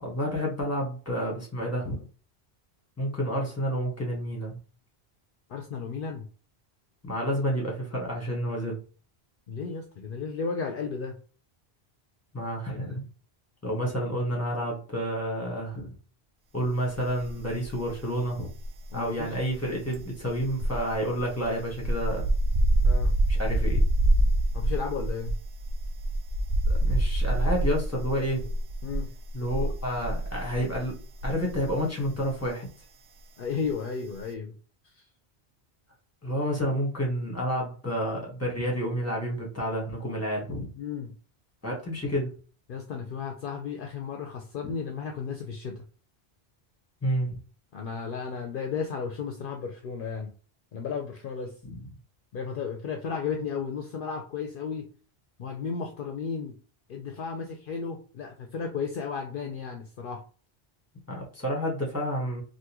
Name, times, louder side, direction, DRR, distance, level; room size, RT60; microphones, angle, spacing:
voice 1, 0.0-2.0 3.0-4.6 7.0-8.8 12.3-13.0 13.6-15.9 16.5-18.5 18.9-22.3 23.3-23.8 26.7-28.5 29.3-31.0 31.2-32.7 36.2-40.7 41.6-42.3 44.6-44.7 47.0-47.4 51.6-51.8 61.1-62.4, equal, 15° left, -1 dB, 1.2 m, -30 dB
voice 2, 5.5-6.3 9.5-11.2 18.9-19.4 22.8-23.1 24.5-25.4 28.8-29.1 33.4-34.5 35.0-35.1 40.8-41.1 42.7-45.8 47.7-50.3 50.7-51.5 52.3-54.9 55.4-56.5 56.9-60.2, left 5 dB, 60° left, 3 dB, 0.7 m, -34 dB
sound 1, 17.2-18.0 18.2-31.8 32.0-32.3, right 1 dB, 80° right, 0.9 m, -26 dB
3.6 x 2.5 x 2.9 m, 0.38 s
omnidirectional pair, 1.1 m